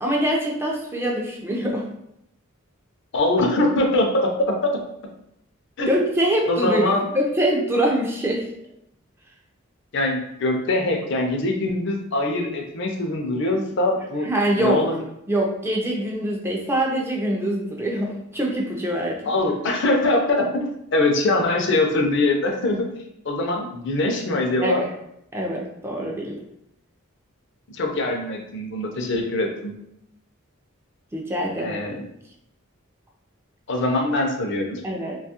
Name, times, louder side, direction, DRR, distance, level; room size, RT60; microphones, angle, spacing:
voice 1, 0.0-1.9 5.9-8.4 14.2-14.8 15.3-19.3 24.6-24.8 25.3-26.4 31.1-31.9 34.8-35.2, right 1 dB, 10° right, -1 dB, 0.3 m, -24 dB
voice 2, 3.1-4.3 4.6-4.7 5.8-5.9 6.5-7.0 9.9-14.3 14.6-15.0 19.3-22.9 23.2-24.8 27.7-29.7 31.6-32.0 33.7-34.8, left 2 dB, 55° left, 2 dB, 0.5 m, -23 dB
2.7 x 2.3 x 2.8 m, 0.78 s
head